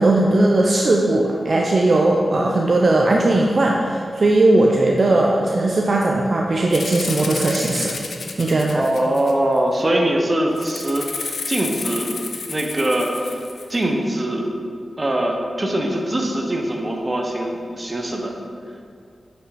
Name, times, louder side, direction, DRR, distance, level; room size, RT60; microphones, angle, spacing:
voice 1, 0.0-8.0 8.4-8.9, right 2 dB, 55° right, 0 dB, 0.6 m, -18 dB
Rattle (instrument), 6.7-9.6 10.6-13.8, left 4 dB, 80° left, 0.7 m, -31 dB
voice 2, 8.7-12.2 12.5-13.4 13.7-14.5 15.0-18.3, right 1 dB, 35° right, 1 dB, 1.1 m, -22 dB
7.8 x 5.7 x 4.3 m, 2.3 s
cardioid pair, 50°, 0 cm